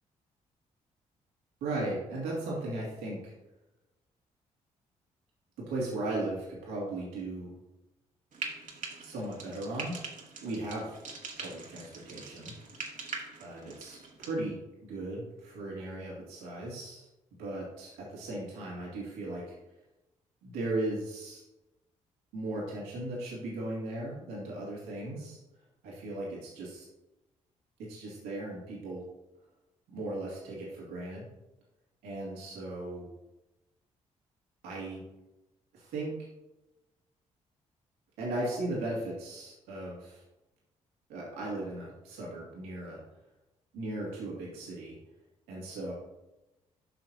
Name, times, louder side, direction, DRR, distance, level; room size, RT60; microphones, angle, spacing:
voice 1, 1.6-3.3 5.6-7.5 9.0-10.0 10.4-11.0 11.4-12.5 13.4-14.6 14.8-17.1 17.4-19.6 20.4-21.4 22.3-25.4 25.8-26.9 27.8-29.0 29.9-31.3 32.0-33.1 34.6-35.0 35.7-36.1 38.2-40.2 41.1-43.0 43.7-45.0 45.5-45.9, right 2 dB, 75° right, -5 dB, 2.5 m, -37 dB
Frying (food), 8.3-14.3, right 4 dB, 50° right, 1.8 m, -43 dB
11.5 x 5.8 x 2.8 m, 0.99 s
hypercardioid pair, 45°, 16 cm